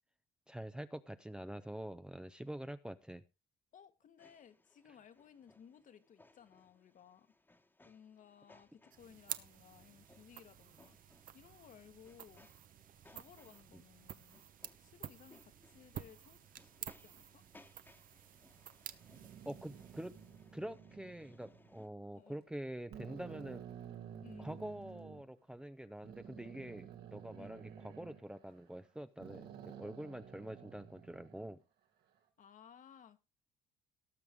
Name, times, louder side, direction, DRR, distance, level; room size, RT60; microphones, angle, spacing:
voice 1, 0.5-3.2 13.7-13.8 19.4-20.2 20.5-23.6 24.4-31.6, right 1 dB, 5° right, 0.6 m, -46 dB
voice 2, 3.7-7.3 7.8-11.0 11.3-12.5 13.0-14.4 14.8-17.4 22.1-22.4 24.2-24.7 27.4-27.6 32.4-33.2, left 8 dB, 50° left, 1.4 m, -60 dB
sound 1, 4.2-21.9, left 2 dB, 10° left, 1.3 m, -67 dB
sound 2, 8.9-20.6, right 10 dB, 55° right, 0.9 m, -51 dB
sound 3, 18.9-21.8 22.4-22.5 22.9-25.2 26.0-28.9 29.2-31.5, right 8 dB, 75° right, 2.5 m, -52 dB
18.5 x 6.6 x 3.6 m
cardioid pair, 110°, 17 cm